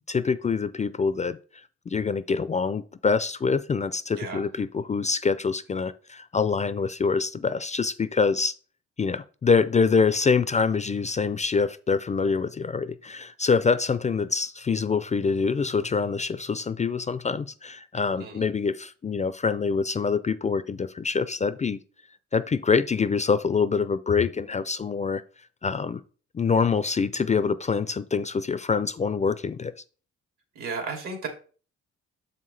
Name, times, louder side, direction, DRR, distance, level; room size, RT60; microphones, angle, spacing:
voice 1, 0.1-8.5 9.0-21.8 22.3-25.2 25.6-26.0 26.3-29.7, left 5 dB, 25° left, 14 dB, 0.4 m, -25 dB
voice 2, 30.5-31.3, right 4 dB, 75° right, 2 dB, 2.7 m, -33 dB
7.1 x 5.6 x 3.3 m, 0.38 s
cardioid pair, 90°, 30 cm